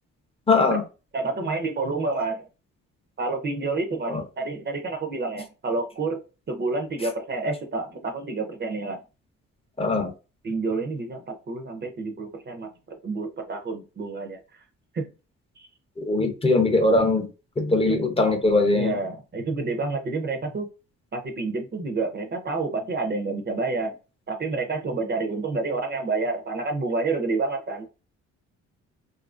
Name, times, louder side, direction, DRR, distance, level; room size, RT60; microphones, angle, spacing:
voice 1, 0.5-0.8 4.1-4.2 9.8-10.1 16.0-17.3 17.6-19.0, left 2 dB, 20° left, 0.6 m, -21 dB
voice 2, 1.1-2.5 3.2-6.2 6.5-9.0 10.4-14.6 14.9-15.1 15.6-15.7 17.9-18.0 18.7-20.7 21.1-23.9 24.3-27.9, right 3 dB, 35° right, 0.6 m, -29 dB
2.7 x 2.5 x 2.4 m
cardioid pair, 90°, 30 cm